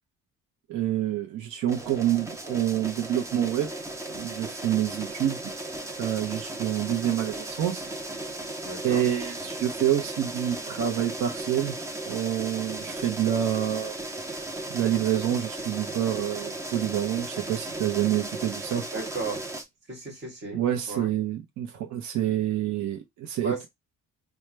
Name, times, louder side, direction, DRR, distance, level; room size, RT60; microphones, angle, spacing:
voice 1, 0.7-3.7 4.1-5.5 6.0-7.9 8.8-11.7 12.0-14.0 14.7-18.9 20.5-23.7, right 11 dB, 65° right, 0.6 m, -27 dB
sound 1, 1.7-19.6, right 2 dB, 10° right, 0.3 m, -36 dB
voice 2, 8.6-9.0 18.9-19.4 19.9-20.6 20.9-21.1 23.4-23.7, right 3 dB, 35° right, 1.6 m, -34 dB
4.5 x 2.1 x 3.2 m
cardioid pair, 180°, 32 cm